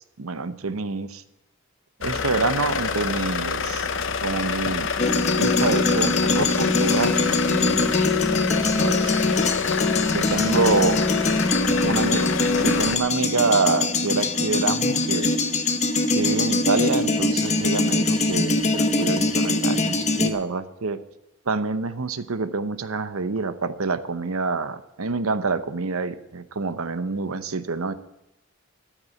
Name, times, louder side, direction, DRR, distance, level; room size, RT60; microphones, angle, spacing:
voice 1, 0.2-1.2 2.0-3.9 4.2-4.9 5.4-9.1 10.1-11.0 11.8-12.3 12.6-15.3 16.1-21.0 21.5-27.9, right 4 dB, 85° right, 12 dB, 0.8 m, -26 dB
sound 1, 2.0-13.0, left 5 dB, 60° left, 0.7 m, -27 dB
sound 2, 5.0-20.3, left 2 dB, 30° left, 0.9 m, -22 dB
13.5 x 6.1 x 9.5 m, 0.89 s
head